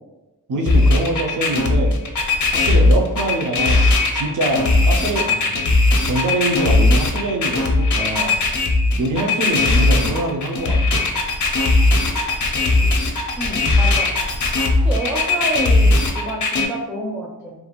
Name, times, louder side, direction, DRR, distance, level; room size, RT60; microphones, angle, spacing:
voice 1, 0.5-2.0 2.5-5.8 6.0-8.3 9.0-11.1, right 1 dB, 60° right, 2 dB, 0.5 m, -24 dB
sound 1, 0.7-16.7, left 2 dB, 55° left, 0.5 m, -17 dB
voice 2, 13.4-14.1 14.8-17.5, right 1 dB, ahead, -5 dB, 0.4 m, -28 dB
2.5 x 2.3 x 2.9 m, 1.1 s
wide cardioid pair, 110°, 37 cm